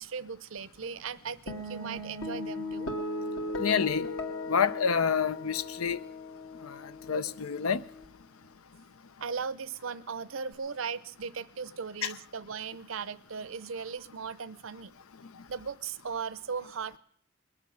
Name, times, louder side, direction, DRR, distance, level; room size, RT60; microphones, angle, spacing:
voice 1, 0.0-2.9 9.2-14.9 15.5-17.0, right 5 dB, 65° right, 0.6 m, -37 dB
sound 1, 1.5-8.1, left 2 dB, 70° left, 2.2 m, -37 dB
voice 2, 3.6-4.1 4.5-6.0 6.6-6.8 7.1-7.8 12.0-12.1, left 6 dB, 85° left, 0.7 m, -28 dB
21.5 x 7.5 x 8.6 m
head